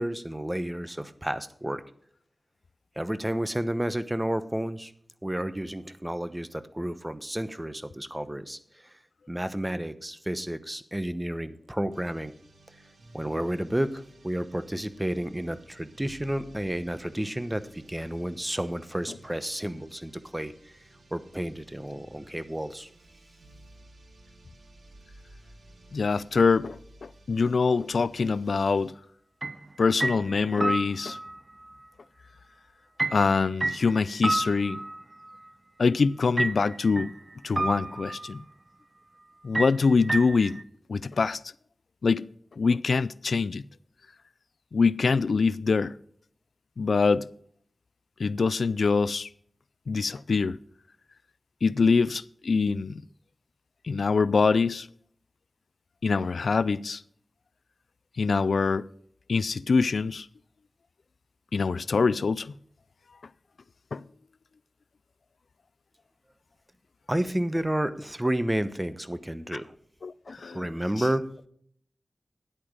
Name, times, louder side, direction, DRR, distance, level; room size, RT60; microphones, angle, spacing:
voice 1, 0.0-1.8 3.0-4.9 5.2-8.9 9.3-12.3 13.1-20.5 21.1-22.9 67.1-69.7 70.3-71.2, right 1 dB, 15° right, 1.0 m, -31 dB
sound 1, 11.9-28.9, right 1 dB, 85° right, 1.5 m, -55 dB
voice 2, 25.9-28.9 29.8-31.2 33.1-34.8 35.8-37.1 37.4-38.4 39.4-40.6 40.9-41.4 42.0-42.3 42.6-43.6 44.7-45.9 46.8-47.3 48.2-49.3 49.9-50.6 51.6-53.0 53.8-54.9 56.0-57.0 58.2-58.9 59.3-60.3 61.5-62.5 63.9-64.0 70.0-70.7, left 4 dB, 85° left, 0.3 m, -24 dB
sound 2, 29.4-29.7 30.0-31.4 33.0-35.3 36.4-37.2 37.6-38.4 39.5-40.6, right 2 dB, 45° right, 0.7 m, -30 dB
10.5 x 8.6 x 5.0 m
cardioid pair, 45°, 0 cm